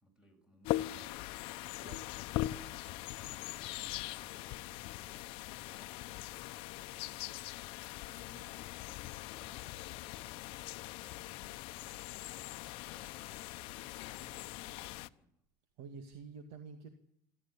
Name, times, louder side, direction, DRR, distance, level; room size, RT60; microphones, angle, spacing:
voice 1, 0.0-1.4 1.7-6.6 6.9-7.4 7.9-13.5 14.1-15.4, equal, 10° right, 5 dB, 7.9 m, -65 dB
sound 1, 0.7-15.1, left 17 dB, 60° left, 0.8 m, -41 dB
voice 2, 15.8-16.9, right 5 dB, 70° right, 6 dB, 2.3 m, -48 dB
27.0 x 13.5 x 8.6 m, 0.73 s
supercardioid pair, 125°, 10 cm